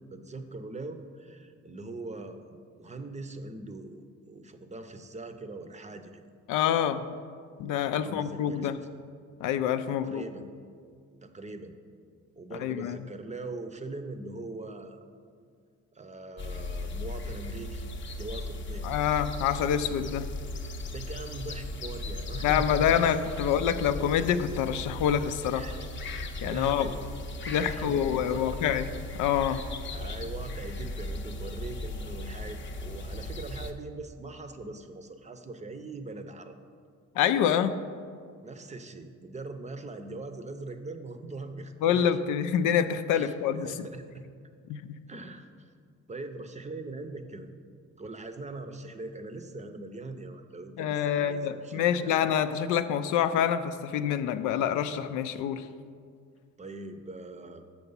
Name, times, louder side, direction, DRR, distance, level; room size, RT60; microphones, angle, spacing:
voice 1, 0.0-6.2 8.0-8.9 9.9-10.5 11.2-11.8 12.4-15.0 15.9-17.9 18.2-18.9 20.9-22.9 25.5-25.9 26.4-27.1 27.6-28.6 29.4-36.5 38.4-42.2 43.1-43.3 43.6-44.2 45.1-45.7 46.1-47.5 48.0-52.2 56.6-57.7, right 2 dB, 25° right, 8 dB, 0.6 m, -41 dB
voice 2, 6.5-7.0 7.6-8.8 9.4-10.2 12.6-13.0 18.8-20.3 22.4-25.6 26.4-26.9 27.5-28.9 29.2-29.6 37.2-37.8 41.8-43.7 44.7-44.8 50.8-55.7, left 9 dB, 90° left, 10 dB, 0.5 m, -26 dB
sound 1, 16.4-33.7, left 1 dB, 40° left, 0.7 m, -37 dB
6.8 x 5.9 x 5.5 m, 2.1 s
cardioid pair, 90°, 30 cm